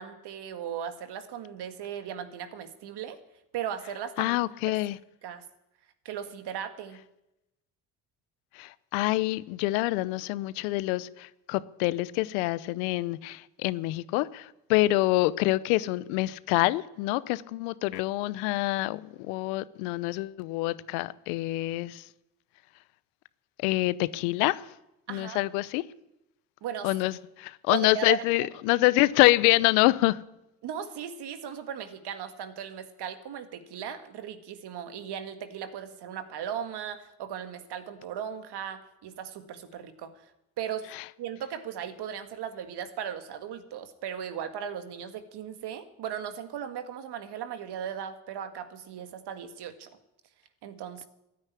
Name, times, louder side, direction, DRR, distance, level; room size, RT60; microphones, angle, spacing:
voice 1, 0.0-3.2 3.5-4.4 4.7-4.8 5.2-5.4 6.1-7.0 25.1-25.4 26.6-27.0 27.7-28.2 30.6-40.3 40.6-40.9 41.2-49.9 50.6-51.1, right 9 dB, 65° right, 9 dB, 1.9 m, -37 dB
voice 2, 4.2-5.0 8.5-22.1 23.6-24.6 25.1-25.8 26.8-30.2 40.9-41.0, left 19 dB, 80° left, 18 dB, 0.8 m, -26 dB
14.5 x 9.7 x 9.7 m, 0.89 s
hypercardioid pair, 60°, 43 cm